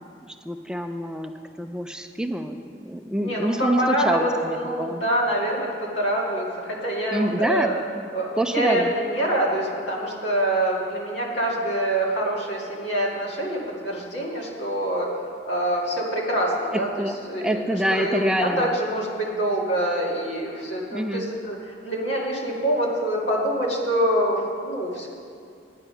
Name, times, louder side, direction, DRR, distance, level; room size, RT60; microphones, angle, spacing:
voice 1, 0.2-1.3 1.6-5.0 7.1-7.7 8.4-8.9 16.7-18.7 20.9-21.3, right 1 dB, 5° right, 6 dB, 0.3 m, -26 dB
voice 2, 3.2-7.8 8.1-15.1 15.5-25.1, right 1 dB, 85° left, -3 dB, 2.1 m, -25 dB
9.7 x 9.0 x 5.6 m, 2.3 s
head